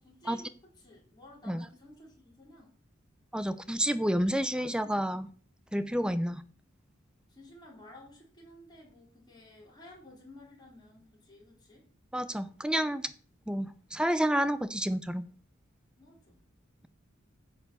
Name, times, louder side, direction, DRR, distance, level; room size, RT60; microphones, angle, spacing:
voice 1, 0.0-2.7 4.3-5.3 6.0-6.3 7.3-11.9 16.0-16.4, left 1 dB, 20° left, -3 dB, 4.6 m, -54 dB
voice 2, 3.3-5.3 5.7-6.4 12.1-13.1 13.5-15.2, equal, 5° right, 12 dB, 0.6 m, -29 dB
10.5 x 4.8 x 7.9 m, 0.43 s
head